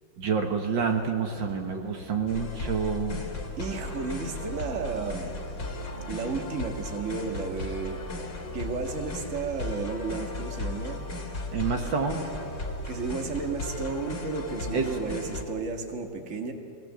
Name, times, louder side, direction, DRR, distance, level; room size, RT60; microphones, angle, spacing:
voice 1, 0.2-3.2 11.5-12.3 14.7-14.9, right 6 dB, 70° right, 3 dB, 2.0 m, -28 dB
sound 1, 0.8-5.2 5.5-7.8, equal, 90° right, 6.1 m, -50 dB
sound 2, 2.3-15.4, left 2 dB, 40° left, 2.2 m, -36 dB
voice 2, 3.6-5.4 6.1-8.0 8.5-11.1 12.9-16.5, right 4 dB, 40° right, 3 dB, 1.9 m, -33 dB
23.0 x 17.0 x 7.5 m, 2.6 s
omnidirectional pair, 2.2 m